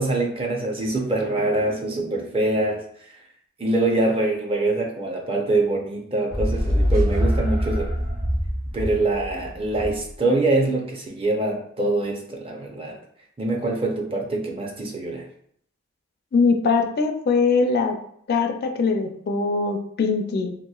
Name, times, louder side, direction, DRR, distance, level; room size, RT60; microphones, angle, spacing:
voice 1, 0.0-2.8 3.6-7.9 8.7-13.0 13.4-15.2, right 2 dB, 25° right, 1 dB, 0.5 m, -24 dB
sound 1, 6.3-10.1, equal, 75° right, 1.1 m, -24 dB
voice 2, 16.3-18.0 18.3-20.5, left 4 dB, 50° left, 4 dB, 0.4 m, -21 dB
2.9 x 2.9 x 2.3 m, 0.67 s
head